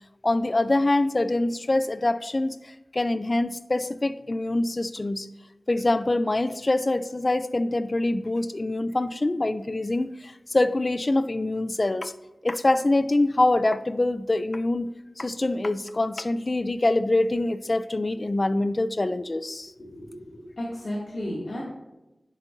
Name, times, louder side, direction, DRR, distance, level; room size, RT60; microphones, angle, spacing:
voice 1, 0.2-5.3 5.7-12.1 12.4-19.7, left 2 dB, 40° left, 13 dB, 0.4 m, -25 dB
voice 2, 19.6-21.6, equal, 65° left, -8 dB, 2.3 m, -34 dB
10.0 x 7.8 x 2.6 m, 0.99 s
wide cardioid pair, 60°, 0 cm